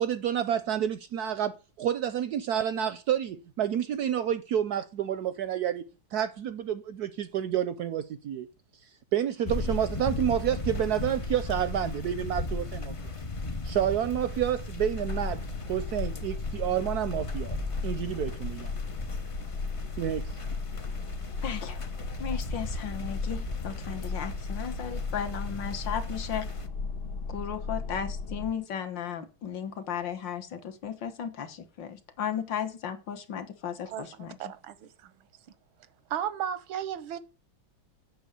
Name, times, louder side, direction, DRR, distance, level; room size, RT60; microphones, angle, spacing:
voice 1, 0.0-5.8 6.1-8.5 9.1-12.9 13.6-15.4 15.7-17.6 17.8-18.8 20.0-20.3, right 10 dB, 70° right, 1.0 m, -29 dB
sound 1, 9.4-26.7, left 2 dB, 50° left, 0.3 m, -37 dB
sound 2, 14.8-28.5, left 4 dB, 85° left, 2.3 m, -35 dB
voice 2, 21.4-21.8 22.2-26.5 27.3-34.4, left 8 dB, 65° left, 2.0 m, -35 dB
voice 3, 33.9-35.3 36.1-37.2, right 9 dB, 90° right, 1.7 m, -35 dB
8.3 x 6.2 x 8.2 m
omnidirectional pair, 2.2 m